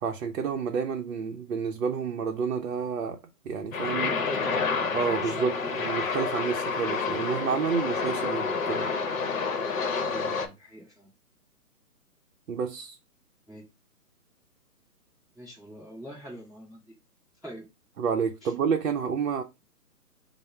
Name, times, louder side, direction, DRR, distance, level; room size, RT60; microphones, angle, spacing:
voice 1, 0.0-3.2 3.4-4.2 4.9-8.9 12.5-13.0 18.0-19.4, right 6 dB, 60° right, 0.6 m, -29 dB
sound 1, 3.7-10.5, left 5 dB, 55° left, 0.8 m, -29 dB
voice 2, 4.0-4.8 5.2-5.7 8.3-8.6 10.0-11.1 13.5-13.6 15.4-16.9 17.4-17.7 18.4-18.5, right 1 dB, ahead, 0.4 m, -43 dB
3.4 x 2.0 x 4.2 m
hypercardioid pair, 160°, 47 cm